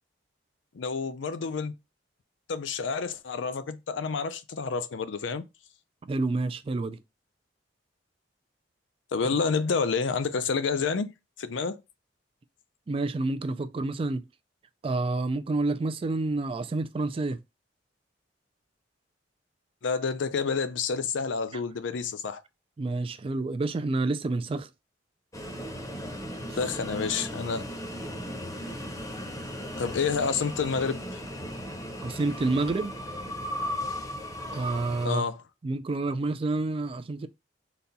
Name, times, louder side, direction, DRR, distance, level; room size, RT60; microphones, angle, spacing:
voice 1, 0.7-1.7 2.5-5.4 9.1-11.1 11.4-11.8 19.8-22.4 26.6-27.6 29.8-31.0 35.0-35.4, left 5 dB, 85° left, 0.5 m, -29 dB
voice 2, 6.0-7.0 12.9-14.2 14.8-17.4 22.8-24.7 32.0-32.9 34.5-35.2 35.6-37.3, right 2 dB, 30° right, 0.3 m, -28 dB
sound 1, 25.3-35.1, equal, 20° left, 0.7 m, -36 dB
4.1 x 2.2 x 3.9 m
head